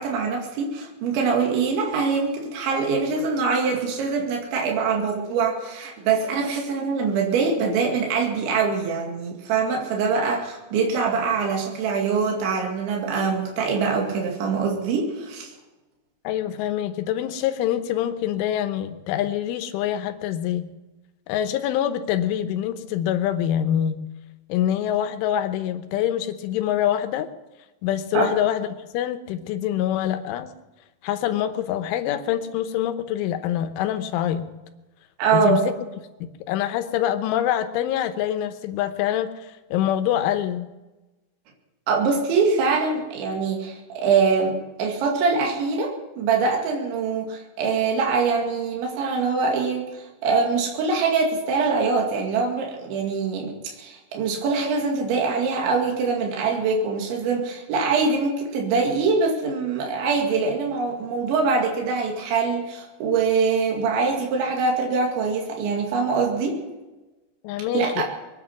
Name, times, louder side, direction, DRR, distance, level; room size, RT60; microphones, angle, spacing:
voice 1, 0.0-15.5 28.1-28.3 35.2-35.6 41.9-66.6 67.7-68.0, right 4 dB, 75° right, 0 dB, 4.6 m, -23 dB
voice 2, 16.2-20.7 21.3-24.0 24.5-27.3 27.8-30.5 31.0-34.5 35.3-35.7 36.2-40.7 67.4-68.0, left 11 dB, 85° left, 9 dB, 3.4 m, -25 dB
22.5 x 9.6 x 6.1 m, 1.1 s
omnidirectional pair, 5.4 m